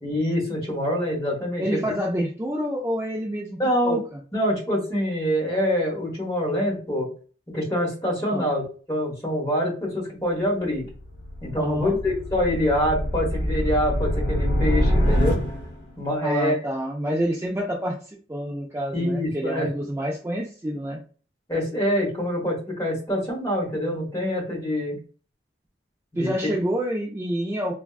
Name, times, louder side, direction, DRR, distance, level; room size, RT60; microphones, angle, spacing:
voice 1, 0.0-1.8 3.6-4.0 4.3-7.1 7.5-8.6 8.9-10.9 11.4-15.4 16.0-16.6 18.9-19.7 21.5-25.0 26.1-26.5, equal, 20° left, -4 dB, 1.1 m, -25 dB
voice 2, 1.6-4.2 8.3-8.5 11.6-12.0 16.2-21.0 26.2-27.7, equal, 15° right, -2 dB, 0.3 m, -28 dB
sound 1, 10.6-15.9, equal, 90° left, 1.2 m, -25 dB
3.4 x 2.2 x 2.3 m, 0.39 s
head